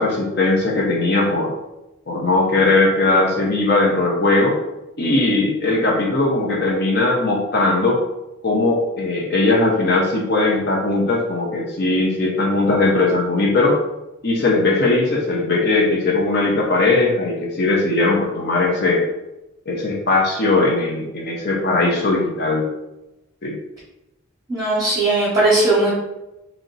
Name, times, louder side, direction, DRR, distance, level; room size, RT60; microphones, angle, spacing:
voice 1, 0.0-1.5 2.1-4.6 5.0-8.0 8.4-13.8 14.2-19.0 19.7-22.7 23.4-23.6, left 2 dB, 50° left, -2 dB, 0.6 m, -19 dB
voice 2, 24.5-25.9, right 2 dB, 15° right, -9 dB, 0.9 m, -18 dB
3.1 x 2.8 x 3.8 m, 0.96 s
head